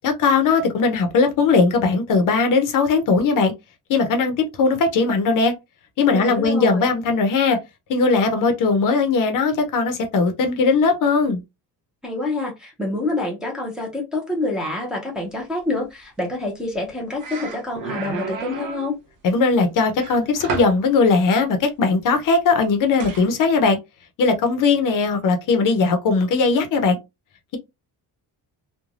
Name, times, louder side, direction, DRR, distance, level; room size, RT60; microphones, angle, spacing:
voice 1, 0.0-3.5 3.9-5.5 6.0-7.6 7.9-11.4 19.2-23.8 24.2-27.0, left 4 dB, 55° left, 0.6 m, -19 dB
voice 2, 6.1-6.9 12.0-19.0, left 2 dB, ahead, 0.6 m, -27 dB
sound 1, 16.7-16.9 17.2-18.9 20.0-20.8 23.0-23.3, right 4 dB, 55° right, 0.7 m, -31 dB
3.1 x 2.2 x 2.4 m
cardioid pair, 165°, 39 cm